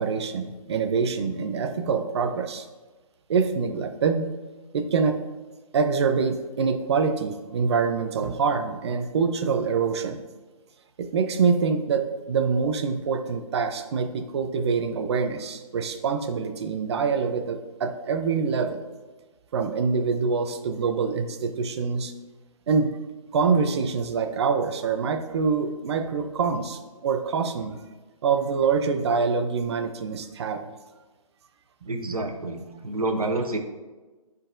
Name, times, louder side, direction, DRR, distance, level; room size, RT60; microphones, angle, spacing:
voice 1, 0.0-2.7 3.3-4.3 4.7-5.2 5.7-10.2 11.0-18.8 19.5-22.1 22.7-22.9 23.3-27.8 28.2-30.6, right 5 dB, 50° right, 7 dB, 0.6 m, -25 dB
voice 2, 31.9-33.6, right 2 dB, 90° right, 5 dB, 0.9 m, -28 dB
12.0 x 4.0 x 2.6 m, 1.3 s
figure-of-eight pair, 140°, 18 cm